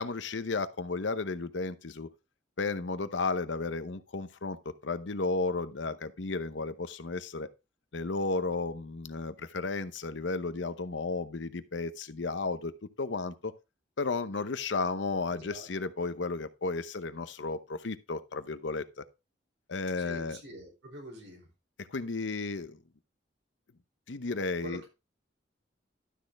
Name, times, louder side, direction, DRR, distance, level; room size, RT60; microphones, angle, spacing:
voice 1, 0.0-2.1 2.6-7.5 7.9-12.7 13.0-13.5 14.0-19.0 19.7-20.4 21.8-22.8 24.1-24.8, left 3 dB, 75° left, 0.8 m, -33 dB
voice 2, 15.3-15.7 20.0-21.5 24.6-24.9, right 1 dB, 85° right, 4.3 m, -45 dB
12.0 x 6.4 x 3.4 m
head